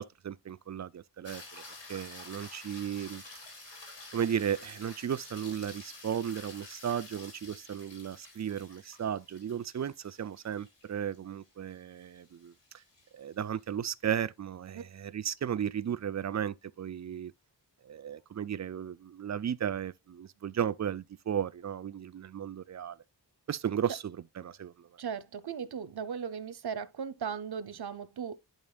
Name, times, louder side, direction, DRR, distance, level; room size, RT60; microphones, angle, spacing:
voice 1, 0.0-1.6 1.9-3.2 4.1-12.5 13.1-17.3 17.8-23.0 23.5-24.9, right 9 dB, 40° right, 0.4 m, -35 dB
sound 1, 1.2-13.6 18.1-18.2, left 2 dB, 75° left, 3.5 m, -50 dB
voice 2, 25.0-28.4, right 7 dB, 60° right, 0.8 m, -37 dB
11.0 x 4.4 x 2.3 m
cardioid pair, 60°, 43 cm